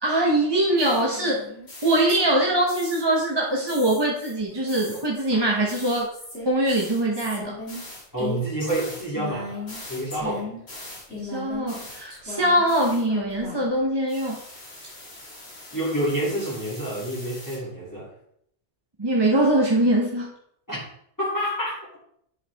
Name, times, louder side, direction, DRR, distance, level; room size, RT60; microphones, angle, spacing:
voice 1, 0.0-1.5 1.8-6.1 6.4-7.6 11.2-14.4 19.0-20.3, right 1 dB, 25° right, -3 dB, 1.0 m, -22 dB
sound 1, 0.8-2.4 2.7-3.2 3.7-13.8 14.1-17.6, left 2 dB, 70° left, 2.4 m, -39 dB
voice 2, 8.1-10.5 15.7-18.1 20.7-20.8 21.2-22.0, right 1 dB, 15° left, -8 dB, 2.7 m, -28 dB
10.0 x 4.9 x 3.5 m, 0.69 s
omnidirectional pair, 1.1 m